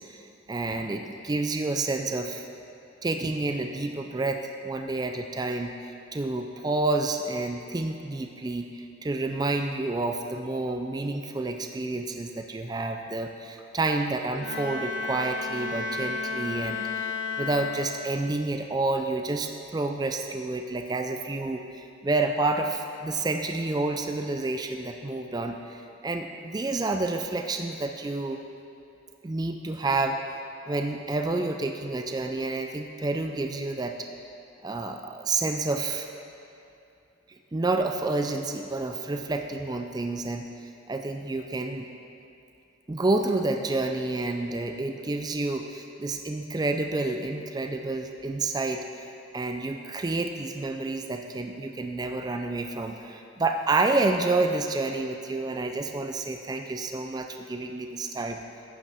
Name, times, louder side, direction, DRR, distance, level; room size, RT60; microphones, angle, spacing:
voice 1, 0.0-2.4 3.0-28.4 29.2-30.2 30.7-34.0 34.6-36.1 37.5-41.9 42.9-49.1 49.3-58.4, right 2 dB, 20° right, 5 dB, 0.3 m, -29 dB
Bowed string instrument, 14.4-18.2, left 4 dB, 60° left, 1.6 m, -32 dB
11.0 x 8.6 x 3.5 m, 2.7 s
head